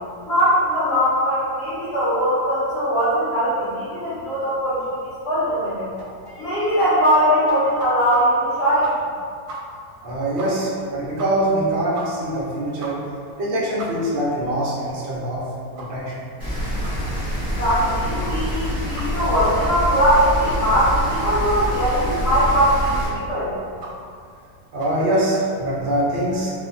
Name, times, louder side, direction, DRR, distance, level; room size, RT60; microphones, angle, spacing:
voice 1, 0.3-4.8 5.2-5.9 6.3-8.9 17.6-23.0 23.3-23.5, equal, 60° left, -12 dB, 0.6 m, -20 dB
sound 1, 6.0-6.9 7.1-7.2 7.5-8.2 8.5-8.6 8.8-9.2 9.5-9.6 9.9-10.0 10.4-10.5 10.8-10.9 11.2-11.5 11.9-12.0 12.4-12.5 12.8-12.9 13.3-13.4 13.8-13.9 14.3-14.4 14.8-14.9 15.2-15.3 15.8-15.9 16.3-16.4 16.8-16.9 17.3-17.4 17.7-18.0 18.2-18.3 18.6-18.7 19.0-19.3 19.6-19.7 20.1-20.2 20.5-20.6 20.8-20.9 21.3-21.4 21.8-21.9 22.3-22.4 22.9-23.0 23.3-23.4 23.8-23.9 24.3-24.4 24.8-24.9, right 3 dB, 70° right, 0.9 m, -37 dB
voice 2, 10.0-13.0 13.4-15.4 15.7-16.1 24.7-26.5, right 1 dB, 90° right, -6 dB, 0.5 m, -23 dB
Rain, 16.4-23.1, equal, 25° right, 0.3 m, -25 dB
2.9 x 2.2 x 2.5 m, 2.3 s
omnidirectional pair, 2.0 m